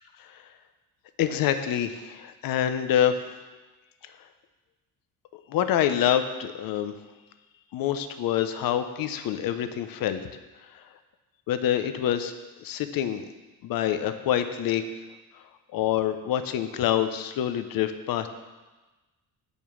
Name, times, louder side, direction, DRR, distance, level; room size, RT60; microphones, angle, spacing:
voice 1, 1.2-3.2 5.5-6.9 7.7-10.2 11.5-12.3 12.6-13.2 13.6-14.8 15.7-18.3, left 10 dB, 75° left, 9 dB, 0.7 m, -26 dB
8.9 x 5.3 x 6.2 m, 1.2 s
cardioid pair, 125°, 35 cm